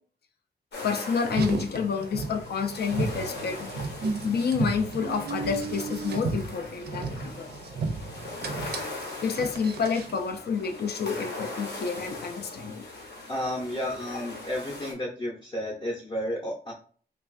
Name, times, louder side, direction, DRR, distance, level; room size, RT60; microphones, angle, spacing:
sound 1, 0.7-14.9, left 2 dB, 85° left, 0.9 m, -40 dB
voice 1, 0.8-3.8 4.2-7.5 9.2-12.8, left 6 dB, 70° left, 6 dB, 0.5 m, -29 dB
Car, 1.3-10.2, right 4 dB, 75° right, 0.5 m, -34 dB
voice 2, 13.3-16.7, equal, 30° left, -3 dB, 0.6 m, -32 dB
3.2 x 2.3 x 2.5 m, 0.44 s
wide cardioid pair, 170°, 17 cm